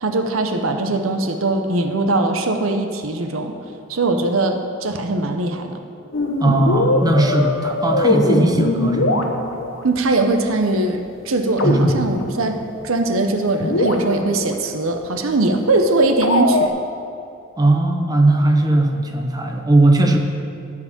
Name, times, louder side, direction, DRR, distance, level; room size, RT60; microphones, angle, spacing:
voice 1, 0.0-3.6 3.9-5.8 9.8-16.7, right 2 dB, 85° right, 6 dB, 0.9 m, -21 dB
sound 1, 6.1-9.8 11.6-12.5 12.8-12.9 13.3-13.4 13.6-14.5 16.2-16.7, left 2 dB, 70° left, 1.0 m, -21 dB
voice 2, 6.4-9.2 11.6-12.1 17.6-20.2, right 2 dB, 20° right, 3 dB, 0.8 m, -18 dB
13.5 x 4.9 x 7.2 m, 2.6 s
head